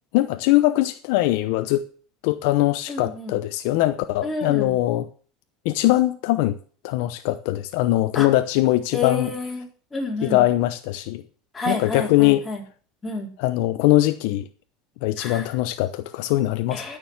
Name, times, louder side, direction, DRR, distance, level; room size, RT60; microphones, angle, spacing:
voice 1, 0.1-1.9 2.2-5.1 5.6-6.6 6.8-9.3 10.2-11.2 11.7-12.4 13.4-14.5 15.0-16.8, left 16 dB, 70° left, 0.8 m, -21 dB
voice 2, 2.9-3.4 4.2-4.7 8.1-8.3 8.9-10.4 11.5-12.6 13.0-13.3 15.2-15.4 16.7-17.0, left 3 dB, 10° left, 4.3 m, -29 dB
13.0 x 6.9 x 7.3 m
supercardioid pair, 145°, 0 cm